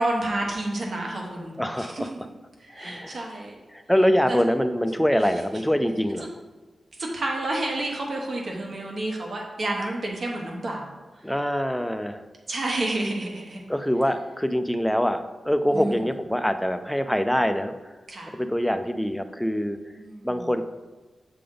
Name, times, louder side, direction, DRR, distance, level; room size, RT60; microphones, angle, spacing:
voice 1, 0.0-2.2 2.6-3.6 4.3-4.4 7.0-11.3 12.5-13.6 15.7-16.0 18.1-18.4 20.0-20.5, right 2 dB, 55° right, 0 dB, 1.2 m, -30 dB
voice 2, 1.6-2.1 2.7-3.2 3.7-6.3 11.2-12.2 13.7-17.8 18.3-19.8 20.2-20.6, equal, 5° left, 8 dB, 0.4 m, -24 dB
7.7 x 3.4 x 3.8 m, 1.2 s
wide cardioid pair, 105°, 0 cm